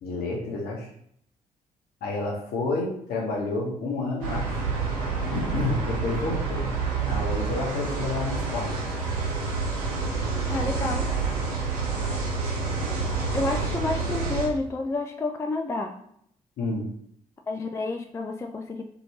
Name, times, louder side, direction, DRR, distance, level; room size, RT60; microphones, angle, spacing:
voice 1, 0.0-0.9 2.0-4.7 5.3-6.7 7.1-8.8 16.6-16.9, left 3 dB, 55° left, 0 dB, 0.9 m, -30 dB
sound 1, 4.2-14.5, right 4 dB, 70° right, 0.8 m, -28 dB
voice 2, 10.5-11.1 13.3-16.0 17.5-18.8, left 3 dB, 15° left, 4 dB, 0.3 m, -29 dB
2.7 x 2.7 x 3.1 m, 0.70 s
figure-of-eight pair, 40°, 19 cm